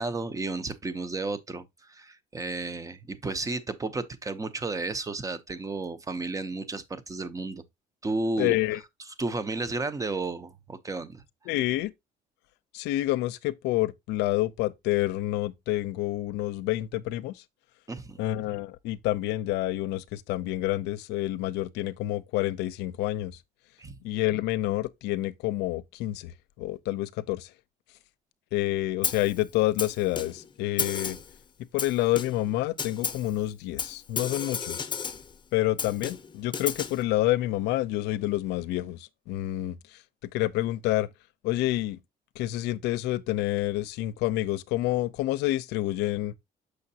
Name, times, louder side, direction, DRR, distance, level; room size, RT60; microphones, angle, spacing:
voice 1, 0.0-7.6 8.0-8.6 9.2-11.2 17.9-18.2 23.8-24.0, right 3 dB, 20° right, 0.7 m, -32 dB
voice 2, 8.4-8.8 11.5-11.9 12.7-17.4 18.2-23.4 24.0-27.5 28.5-31.2 31.7-34.9 35.5-40.0 40.3-41.1 41.4-42.0 42.4-46.3, left 16 dB, 90° left, 0.5 m, -28 dB
Snare drum, 29.0-29.4 29.8-30.5 30.8-31.3 31.8-32.5 32.8-33.3 33.8-35.3 35.8-37.0, left 6 dB, 25° left, 0.7 m, -33 dB
6.5 x 5.7 x 2.7 m
cardioid pair, 110°, 17 cm